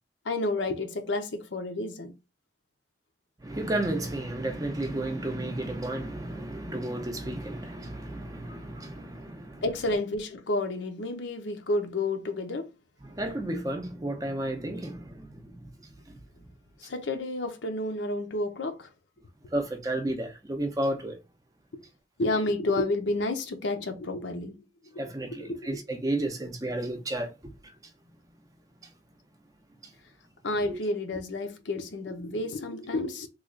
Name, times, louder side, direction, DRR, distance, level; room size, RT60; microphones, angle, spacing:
voice 1, 0.2-2.1 9.6-12.7 16.8-18.9 22.2-24.5 24.9-25.8 30.4-33.3, left 2 dB, 75° left, 0.7 m, -30 dB
voice 2, 3.4-9.6 13.1-15.6 16.1-16.2 19.5-21.2 25.0-27.3 30.7-30.8, right 1 dB, 20° right, 0.5 m, -32 dB
3.1 x 2.3 x 3.7 m
head